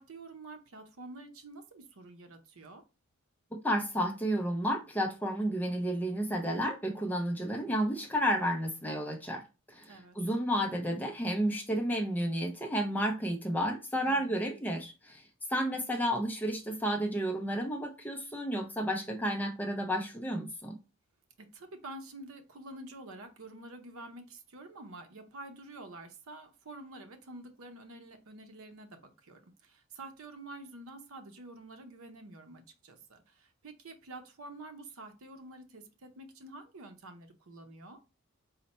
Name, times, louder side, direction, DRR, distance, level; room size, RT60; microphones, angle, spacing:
voice 1, 0.0-2.8 9.9-10.2 14.0-14.5 21.4-38.0, right 2 dB, 70° right, 0.7 m, -48 dB
voice 2, 3.6-9.4 9.7-15.2 15.5-20.8, equal, 10° left, 0.5 m, -31 dB
4.1 x 2.1 x 4.1 m
head